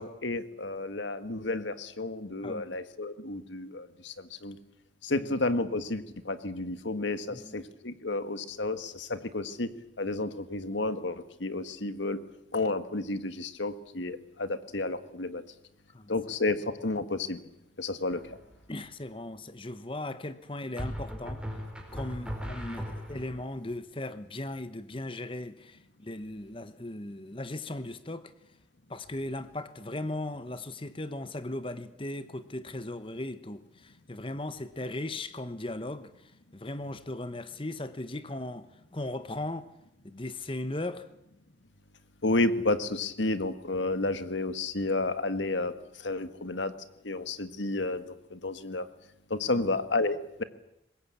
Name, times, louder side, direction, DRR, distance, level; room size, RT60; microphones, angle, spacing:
voice 1, 0.0-4.6 5.0-9.7 10.0-12.2 12.5-15.4 16.1-17.4 17.8-18.2 42.2-45.7 46.0-46.7 47.0-48.8 49.3-50.4, left 2 dB, 80° left, 1.7 m, -31 dB
voice 2, 2.4-2.8 5.2-5.3 7.3-7.6 15.9-16.1 18.7-21.4 21.9-28.3 28.9-36.1 36.5-39.7 40.0-41.1 49.5-49.6, left 1 dB, 30° left, 1.1 m, -37 dB
sound 1, 18.1-18.6 20.8-23.4, equal, 5° right, 4.4 m, -38 dB
23.5 x 20.5 x 8.5 m
head